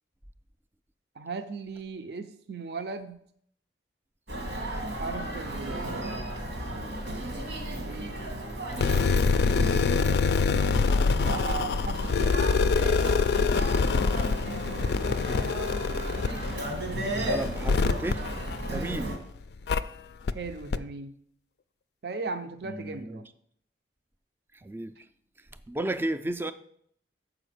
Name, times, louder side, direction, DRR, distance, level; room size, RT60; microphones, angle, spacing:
voice 1, 1.2-3.2 4.7-6.8 7.8-8.2 11.2-12.3 18.7-19.1 20.3-21.1 22.0-23.3, right 4 dB, 60° right, 0.5 m, -37 dB
Human voice, 4.3-19.2, right 1 dB, 85° right, 1.8 m, -34 dB
sound 1, 8.7-19.1 19.7-19.8 20.3-20.4 20.7-20.8, left 4 dB, 60° left, 0.3 m, -25 dB
voice 2, 17.2-18.2 18.7-19.2 22.6-23.2 24.6-24.9 25.7-26.5, right 1 dB, 10° right, 0.3 m, -33 dB
6.9 x 5.0 x 6.5 m
head